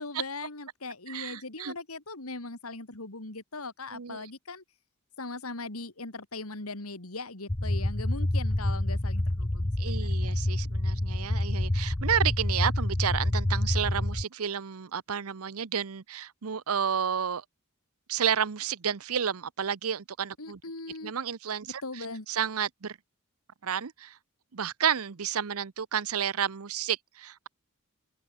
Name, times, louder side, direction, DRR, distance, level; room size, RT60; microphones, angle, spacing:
voice 1, 0.0-4.6 5.2-10.3 20.4-21.1 21.8-22.3, left 3 dB, 85° left, 3.2 m, -40 dB
voice 2, 1.1-1.7 3.9-4.3 9.8-17.4 18.1-20.6 21.0-23.0 23.6-24.2 24.5-27.5, right 8 dB, 90° right, 0.8 m, -31 dB
sound 1, 7.5-14.2, left 1 dB, 20° left, 0.9 m, -28 dB
open air
head